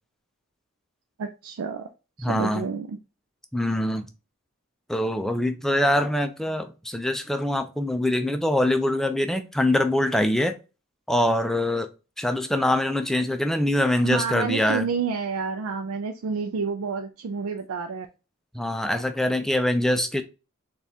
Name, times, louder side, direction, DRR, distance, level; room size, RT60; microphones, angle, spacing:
voice 1, 1.2-1.9 2.2-3.0 14.0-18.1, right 5 dB, 85° right, 0.4 m, -29 dB
voice 2, 2.2-2.7 3.5-4.0 4.9-10.6 11.1-11.9 12.2-14.9 18.5-20.2, left 1 dB, ahead, 0.3 m, -24 dB
4.1 x 2.4 x 3.5 m
head